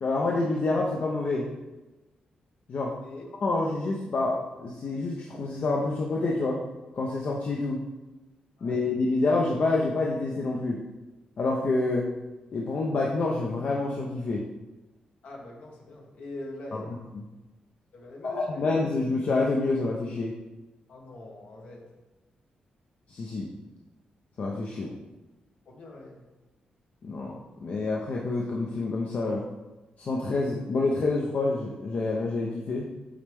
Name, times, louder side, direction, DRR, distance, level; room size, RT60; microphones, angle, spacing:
voice 1, 0.0-1.5 2.7-2.9 3.4-6.6 6.9-7.8 8.6-10.8 11.4-12.1 12.5-14.4 18.2-20.3 23.1-23.5 24.4-24.9 27.0-29.4 30.0-32.9, left 3 dB, 60° left, -2 dB, 0.7 m, -27 dB
voice 2, 15.2-17.0 17.9-18.7 20.9-21.8 24.7-24.9 25.6-26.3, left 1 dB, 75° left, -1 dB, 1.4 m, -43 dB
8.4 x 3.2 x 3.5 m, 1.1 s
cardioid pair, 75°, 3 cm